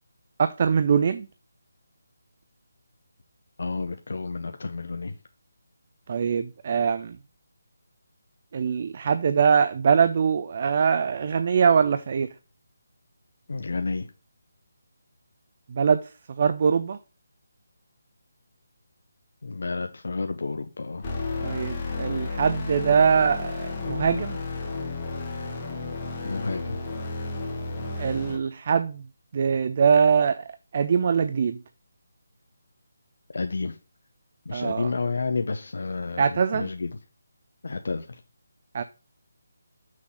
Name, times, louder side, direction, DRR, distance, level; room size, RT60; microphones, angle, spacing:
voice 1, 0.4-1.3 6.1-7.2 8.5-12.3 15.7-16.0 16.4-17.0 21.4-24.4 28.0-29.0 29.3-30.5 30.7-31.6 34.5-34.9 36.2-36.7 38.7-38.8, right 6 dB, 40° right, 0.4 m, -22 dB
voice 2, 3.6-5.2 13.5-14.1 19.4-21.1 26.2-26.8 33.3-33.8 34.5-36.9 37.6-38.2, left 4 dB, 65° left, 0.6 m, -30 dB
sound 1, 21.0-28.4, left 3 dB, 25° left, 1.5 m, -32 dB
6.2 x 3.6 x 5.7 m
figure-of-eight pair, 165°, 0 cm